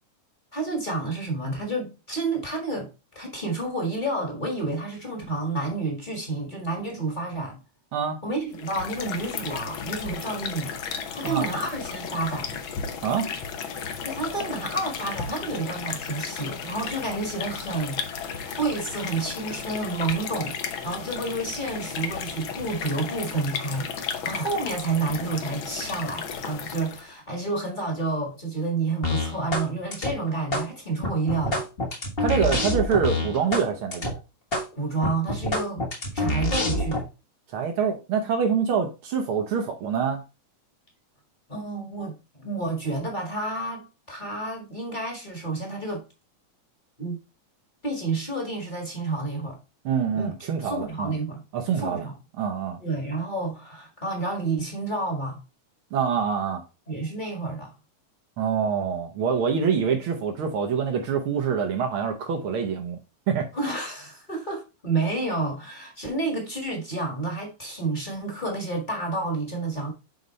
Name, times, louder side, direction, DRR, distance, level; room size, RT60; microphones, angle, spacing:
voice 1, 0.5-7.6 8.2-10.7 11.1-12.6 14.0-20.6 20.8-31.7 34.7-35.8 36.1-37.1 41.5-46.0 47.0-47.2 47.8-49.6 50.1-50.3 50.6-51.4 51.8-52.2 52.8-55.4 56.9-57.7 63.5-69.9, right 3 dB, 25° left, 1.0 m, -30 dB
sound 1, 8.5-27.1, left 6 dB, 85° left, 1.1 m, -34 dB
sound 2, 29.0-29.7 29.9-30.6 31.0-33.6 33.9-34.1 34.5-34.6 35.0-37.0, left 1 dB, 60° left, 0.6 m, -26 dB
voice 2, 32.2-34.2 37.5-40.2 49.8-51.1 51.5-52.1 52.4-52.8 55.9-56.6 58.4-63.0 63.3-63.5, right 6 dB, 85° right, 1.1 m, -25 dB
9.1 x 4.0 x 3.2 m
omnidirectional pair, 3.6 m